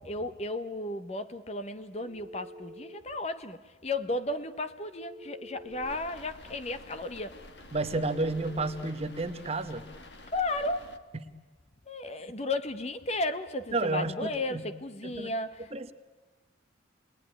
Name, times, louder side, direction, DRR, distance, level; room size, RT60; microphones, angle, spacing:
voice 1, 0.0-7.4 10.3-11.0 11.9-15.7, left 2 dB, 35° left, 0.9 m, -34 dB
Telephone, 2.0-3.0 5.0-6.0 7.9-8.9, equal, 15° right, 1.9 m, -47 dB
sound 1, 5.7-11.0, left 1 dB, 65° left, 1.4 m, -49 dB
voice 2, 7.7-9.9 13.7-14.6 15.0-15.3 15.7-15.9, right 2 dB, 30° right, 0.9 m, -31 dB
28.5 x 20.0 x 9.9 m
head